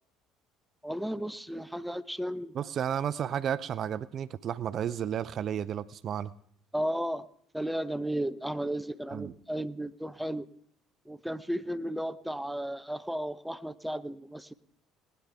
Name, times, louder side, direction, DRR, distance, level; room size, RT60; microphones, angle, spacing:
voice 1, 0.8-2.5 6.7-7.3 7.5-10.5 11.1-14.5, right 1 dB, 5° right, 14 dB, 0.7 m, -34 dB
voice 2, 2.5-6.3 9.1-9.3, right 9 dB, 50° right, 17 dB, 0.5 m, -32 dB
19.5 x 10.5 x 3.4 m, 0.63 s
hypercardioid pair, 60°, 0 cm